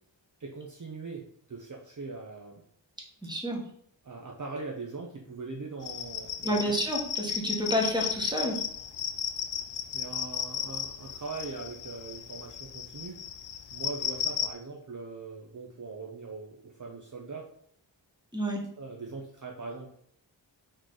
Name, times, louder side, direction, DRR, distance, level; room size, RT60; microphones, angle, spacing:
voice 1, 0.4-2.6 4.0-6.7 9.9-13.2 13.7-17.5 18.8-19.9, right 3 dB, 40° right, -1 dB, 0.7 m, -41 dB
voice 2, 3.2-3.6 6.4-8.6 18.3-18.6, equal, 10° right, -1 dB, 1.3 m, -29 dB
sound 1, 5.8-14.5, left 8 dB, 75° left, 0.6 m, -34 dB
4.4 x 3.1 x 3.9 m, 0.66 s
wide cardioid pair, 80°, 45 cm